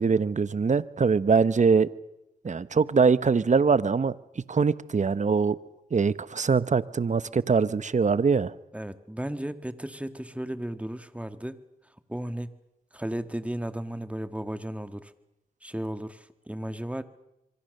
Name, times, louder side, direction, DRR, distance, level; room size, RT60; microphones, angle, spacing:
voice 1, 0.0-1.9 2.4-5.6 5.9-8.5, right 5 dB, 50° right, 1.1 m, -23 dB
voice 2, 8.7-11.6 12.1-12.5 12.9-15.1 15.6-17.0, right 1 dB, 10° right, 2.0 m, -34 dB
26.0 x 24.0 x 6.7 m
cardioid pair, 45°, 16 cm